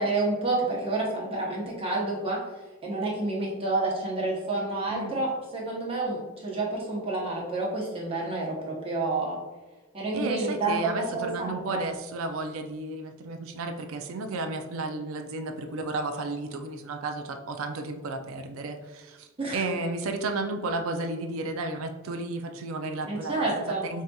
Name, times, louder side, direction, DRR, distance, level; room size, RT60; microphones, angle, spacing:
voice 1, 0.0-2.4 2.8-9.4 9.9-11.8 19.4-19.7 23.1-23.9, right 2 dB, 30° right, -4 dB, 0.8 m, -29 dB
voice 2, 10.1-23.5 23.8-24.0, right 2 dB, 70° right, 6 dB, 0.4 m, -33 dB
4.7 x 2.7 x 2.3 m, 1.2 s
head